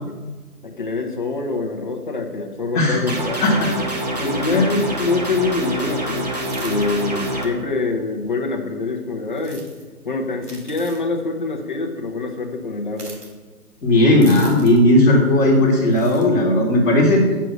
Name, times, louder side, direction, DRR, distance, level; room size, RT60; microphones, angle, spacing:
voice 1, 0.6-3.4 4.2-9.6 10.0-13.1, left 3 dB, 30° left, 1 dB, 1.0 m, -25 dB
sound 1, 3.1-7.5, right 1 dB, 25° right, 1.0 m, -26 dB
voice 2, 3.4-3.7 4.5-4.7 13.8-17.2, left 1 dB, 5° left, -16 dB, 1.1 m, -15 dB
sound 2, 6.3-6.9 9.3-9.8 10.4-11.0 12.9-13.3 14.2-14.8 15.9-16.3, right 2 dB, 85° right, 3.0 m, -41 dB
8.2 x 5.8 x 6.2 m, 1.3 s
figure-of-eight pair, 160°, 46 cm